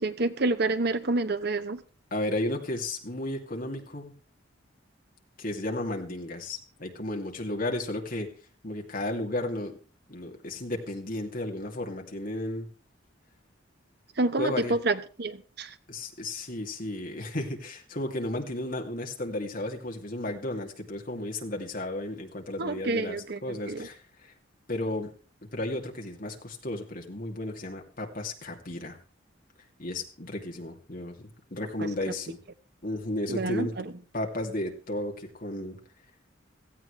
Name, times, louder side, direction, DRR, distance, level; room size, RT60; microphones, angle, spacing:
voice 1, 0.0-1.8 14.2-15.7 22.6-23.9 31.8-31.9 33.3-33.9, right 2 dB, 55° right, 1.0 m, -28 dB
voice 2, 2.1-4.2 5.4-8.3 8.6-9.8 10.1-12.7 14.4-14.7 15.9-23.2 23.4-24.3 24.7-25.1 25.5-29.0 29.8-32.4 32.8-33.7 34.1-35.8, left 1 dB, 45° left, 2.6 m, -33 dB
17.0 x 15.0 x 3.3 m
head